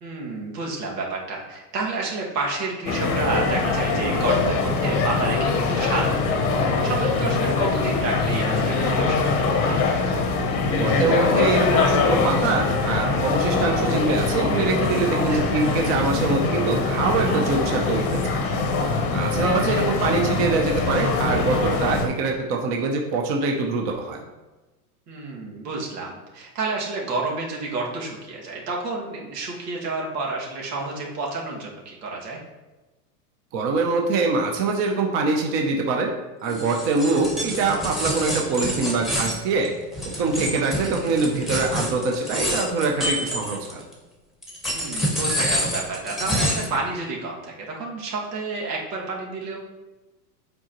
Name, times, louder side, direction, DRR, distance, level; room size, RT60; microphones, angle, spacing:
voice 1, 0.0-6.4 6.6-9.8 15.2-15.6 25.1-32.4 40.5-41.1 44.7-49.6, right 3 dB, 80° right, -3 dB, 2.1 m, -30 dB
sound 1, 2.8-22.1, left 4 dB, 30° left, 0.8 m, -23 dB
voice 2, 10.7-18.4 19.1-24.2 33.5-36.1 36.4-39.7 40.1-43.8, right 3 dB, 30° right, 1 dB, 0.7 m, -24 dB
sound 2, 36.5-43.9 44.4-46.8, equal, ahead, 1.0 m, -27 dB
7.9 x 4.9 x 3.0 m, 1.1 s
supercardioid pair, 145°, 47 cm